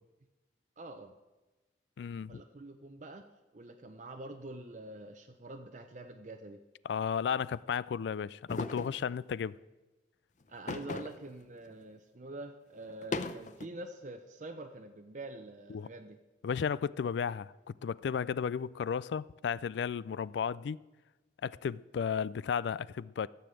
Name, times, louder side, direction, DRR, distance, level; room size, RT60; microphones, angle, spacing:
voice 1, 0.8-1.1 2.3-3.2 3.5-6.6 10.5-16.2, right 2 dB, 45° right, 0.6 m, -46 dB
voice 2, 2.0-2.4 6.8-9.6 15.7-15.9 16.4-20.8 21.4-23.3, left 7 dB, 75° left, 0.3 m, -34 dB
sound 1, 8.5-9.0 10.7-11.3 11.7-11.8 12.9-13.7, left 2 dB, 45° left, 0.6 m, -37 dB
13.5 x 7.0 x 7.6 m
head